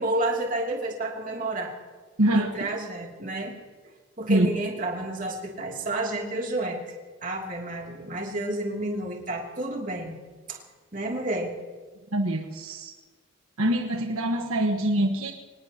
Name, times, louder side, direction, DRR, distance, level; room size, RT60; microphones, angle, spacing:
voice 1, 0.0-1.7 2.3-3.6 4.2-6.8 7.2-10.2 10.5-10.6 10.9-11.5, right 1 dB, 35° right, 0 dB, 2.8 m, -30 dB
voice 2, 2.2-2.5 4.3-4.5 12.1-12.9 13.6-15.3, right 1 dB, 75° right, 3 dB, 1.3 m, -24 dB
25.5 x 19.0 x 2.9 m, 1.4 s
head